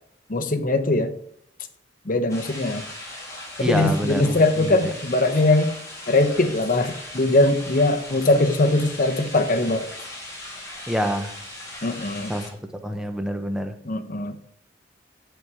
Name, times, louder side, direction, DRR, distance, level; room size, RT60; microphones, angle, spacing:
voice 1, 0.3-1.1 2.1-2.8 3.6-5.7 6.1-9.9 11.8-12.3 13.9-14.4, left 2 dB, 45° left, 7 dB, 0.9 m, -21 dB
sound 1, 2.3-12.5, left 1 dB, 15° left, 2.9 m, -38 dB
voice 2, 3.6-4.9 10.9-11.3 12.3-12.5 12.8-13.8, equal, 5° right, 7 dB, 0.7 m, -26 dB
7.9 x 7.2 x 4.8 m, 0.70 s
head